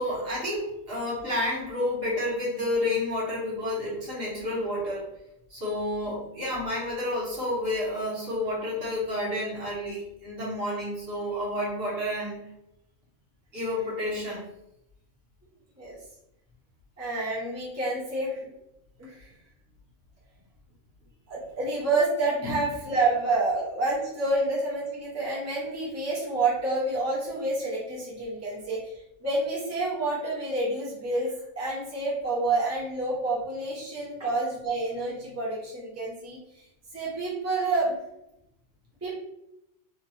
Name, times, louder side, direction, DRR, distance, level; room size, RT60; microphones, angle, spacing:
voice 1, 0.0-5.1 5.5-12.5 13.5-14.4 22.4-22.6 34.2-34.3, left 1 dB, 50° right, -6 dB, 1.2 m, -30 dB
voice 2, 17.0-18.5 19.0-19.3 21.3-36.6 36.9-38.0 39.0-39.2, right 2 dB, 15° right, -7 dB, 0.8 m, -28 dB
3.0 x 2.4 x 2.7 m, 0.83 s
omnidirectional pair, 1.3 m